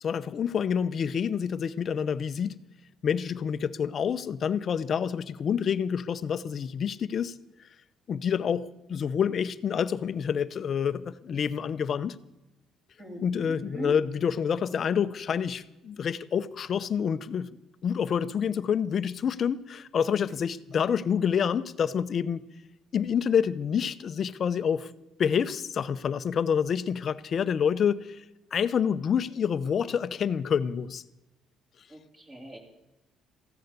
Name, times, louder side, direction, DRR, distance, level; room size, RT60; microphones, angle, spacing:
voice 1, 0.0-2.6 3.0-7.4 8.1-12.1 13.2-17.5 17.8-22.4 22.9-24.9 25.2-28.2 28.5-31.0, left 7 dB, 40° left, 14 dB, 0.6 m, -27 dB
voice 2, 13.0-13.9 20.3-20.4 31.9-32.6, right 1 dB, 25° right, 2 dB, 3.4 m, -40 dB
14.5 x 11.0 x 8.1 m, 0.94 s
cardioid pair, 145°, 0 cm